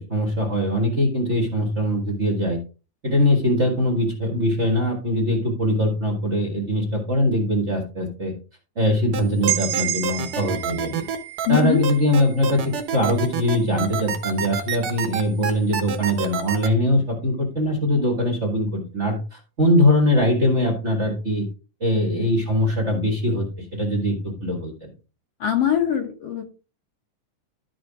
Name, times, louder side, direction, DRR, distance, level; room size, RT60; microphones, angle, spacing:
voice 1, 0.0-2.6 3.0-8.3 8.7-11.0 11.5-21.4 21.8-23.4 23.7-24.2 24.4-24.9, left 1 dB, 30° right, 1 dB, 1.5 m, -22 dB
sound 1, 9.1-16.7, right 6 dB, 60° right, 1.5 m, -27 dB
sound 2, 9.5-13.3, right 14 dB, 85° right, 2.0 m, -30 dB
voice 2, 11.5-11.8 25.4-26.4, left 10 dB, 65° left, 4 dB, 1.7 m, -22 dB
12.5 x 5.1 x 3.6 m, 0.34 s
omnidirectional pair, 3.5 m